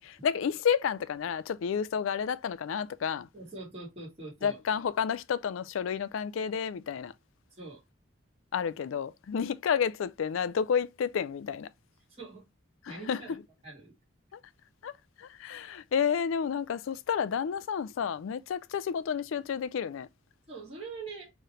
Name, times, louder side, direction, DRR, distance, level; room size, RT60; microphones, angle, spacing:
voice 1, 0.0-3.3 4.4-7.1 8.5-11.7 12.8-13.4 14.3-14.4 14.8-14.9 15.2-20.1, left 7 dB, 80° left, 0.4 m, -30 dB
voice 2, 3.3-4.6 7.5-7.8 12.2-12.4 12.9-13.4 13.6-13.9 20.5-21.3, right 3 dB, 30° right, 2.3 m, -43 dB
4.7 x 3.1 x 2.9 m
head